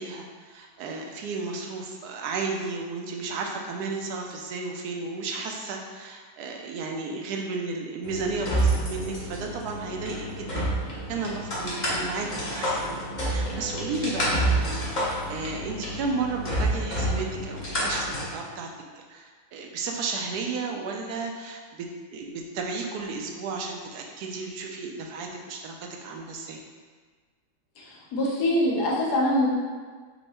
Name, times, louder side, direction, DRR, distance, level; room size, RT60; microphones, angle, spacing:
voice 1, 0.0-10.7 11.1-18.7 19.1-26.6, right 4 dB, 75° right, 1 dB, 1.1 m, -33 dB
sound 1, 8.0-18.2, right 1 dB, 35° left, 0.8 m, -29 dB
voice 2, 27.8-29.5, left 1 dB, 75° left, -4 dB, 1.5 m, -24 dB
4.4 x 2.7 x 4.1 m, 1.5 s
omnidirectional pair, 1.7 m